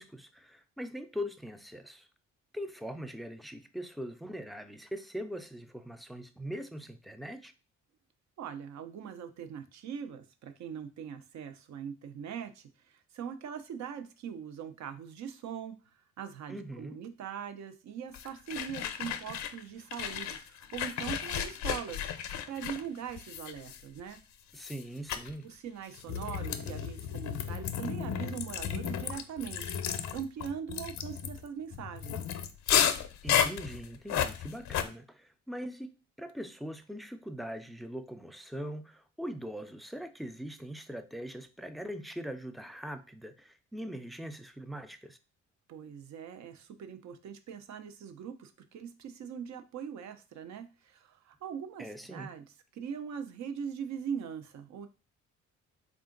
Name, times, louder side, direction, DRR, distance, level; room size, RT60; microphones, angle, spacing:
voice 1, 0.0-2.1 2.5-7.5 16.5-17.0 24.5-25.5 33.2-45.2 51.8-52.3, equal, ahead, 9 dB, 0.3 m, -41 dB
voice 2, 8.4-15.8 16.2-22.1 22.5-24.2 25.4-29.7 30.1-32.2 45.7-52.4 52.7-54.9, right 7 dB, 65° right, 9 dB, 0.6 m, -41 dB
sound 1, 18.1-19.6 19.9-24.1 24.6-24.8 25.1-25.3 25.9-34.9, left 9 dB, 70° left, 0.5 m, -33 dB
3.6 x 2.4 x 3.7 m, 0.32 s
cardioid pair, 90°, 30 cm